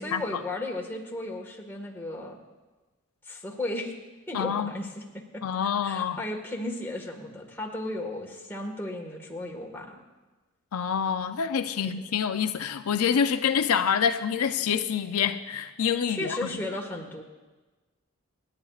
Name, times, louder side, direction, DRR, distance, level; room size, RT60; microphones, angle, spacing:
voice 1, 0.0-2.4 3.2-3.9 4.3-5.4 5.8-10.0 11.8-11.9 16.1-17.2, left 1 dB, 10° left, 0 dB, 1.5 m, -35 dB
voice 2, 4.3-4.7 5.4-6.2 10.7-16.5, left 7 dB, 80° left, 9 dB, 0.5 m, -26 dB
27.0 x 9.8 x 2.4 m, 1.2 s
head